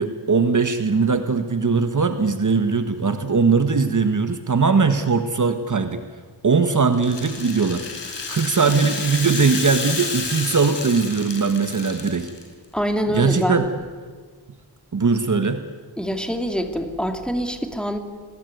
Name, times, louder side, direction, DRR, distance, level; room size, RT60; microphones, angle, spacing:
voice 1, 0.0-6.0 6.4-7.8 8.3-12.3 13.1-13.7 14.9-15.6, right 4 dB, 45° right, 9 dB, 1.5 m, -20 dB
Rattle (instrument), 6.9-12.4, left 4 dB, 85° left, 5.4 m, -30 dB
voice 2, 12.7-13.7 16.0-18.0, equal, ahead, 6 dB, 2.5 m, -25 dB
28.0 x 20.5 x 9.4 m, 1.5 s
wide cardioid pair, 140°, 42 cm